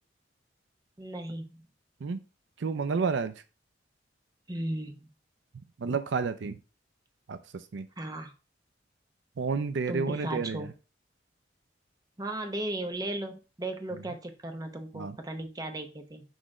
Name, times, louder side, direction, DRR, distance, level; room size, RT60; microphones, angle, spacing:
voice 1, 1.0-1.7 4.5-5.1 8.0-8.3 9.9-10.7 12.2-16.2, right 1 dB, 20° right, 5 dB, 0.8 m, -36 dB
voice 2, 2.6-3.3 5.8-6.6 7.3-7.4 7.7-7.9 9.4-10.7 14.9-15.1, right 5 dB, 70° right, 11 dB, 0.5 m, -30 dB
6.4 x 3.0 x 4.9 m, 0.32 s
head